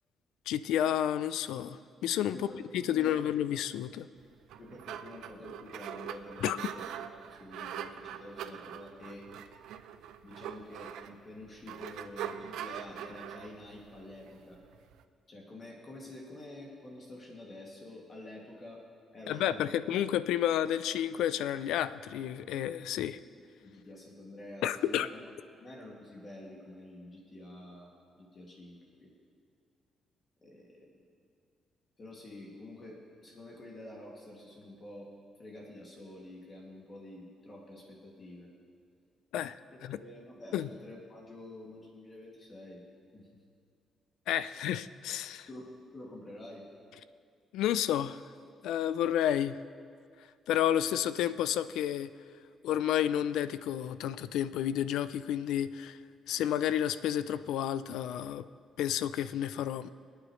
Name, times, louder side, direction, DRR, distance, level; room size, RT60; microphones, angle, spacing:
voice 1, 0.5-2.4 2.7-4.1 6.4-6.6 19.3-23.2 24.6-25.1 39.3-39.6 39.8-40.0 40.5-40.7 44.3-45.5 47.5-48.2 48.6-49.6 50.5-52.1 52.6-56.0 56.3-58.4 58.8-59.9, left 11 dB, 90° left, 14 dB, 0.4 m, -30 dB
voice 2, 2.3-2.6 2.9-3.3 4.6-6.8 7.1-9.3 10.2-14.6 15.3-18.8 19.1-19.7 23.6-25.2 25.6-27.9 28.2-29.1 30.4-30.9 32.0-35.1 35.4-38.5 39.9-42.8 43.1-43.3 45.5-46.7, left 1 dB, 40° left, -2 dB, 2.4 m, -48 dB
sound 1, 4.3-15.0, right 9 dB, 85° right, 0.6 m, -43 dB
26.5 x 9.0 x 3.2 m, 2.3 s
cardioid pair, 90°, 0 cm